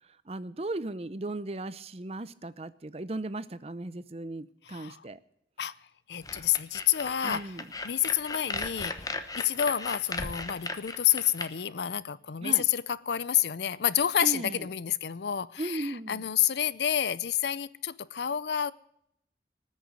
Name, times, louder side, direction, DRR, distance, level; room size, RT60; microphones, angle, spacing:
voice 1, 0.3-5.2 7.2-7.7 12.4-12.7 14.2-14.7 15.6-16.2, right 2 dB, 35° right, 0.6 m, -36 dB
voice 2, 4.7-5.0 5.6-5.7 6.1-7.5 7.8-9.1 9.3-18.7, left 10 dB, 75° left, 0.5 m, -29 dB
sound 1, 6.2-11.5, left 3 dB, 20° left, 1.0 m, -36 dB
19.5 x 6.6 x 9.3 m
head